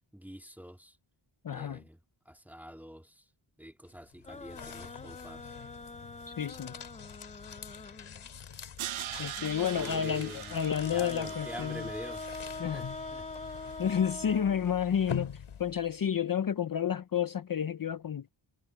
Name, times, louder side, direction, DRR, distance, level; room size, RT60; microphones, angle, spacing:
voice 1, 0.1-1.0 1.5-2.0 2.3-3.2 3.6-5.5 9.7-10.6 10.8-13.4, equal, 5° right, 2.1 m, -46 dB
voice 2, 1.4-1.8 6.3-6.7 9.2-11.9 12.6-12.8 13.8-18.3, left 8 dB, 45° left, 0.8 m, -31 dB
sound 1, 3.9-16.0, left 7 dB, 80° left, 3.4 m, -45 dB
sound 2, 4.3-8.3 9.4-15.2, left 3 dB, 15° left, 0.5 m, -44 dB
Crash cymbal, 8.8-13.8, right 12 dB, 80° right, 0.7 m, -43 dB
wide cardioid pair, 90°, 49 cm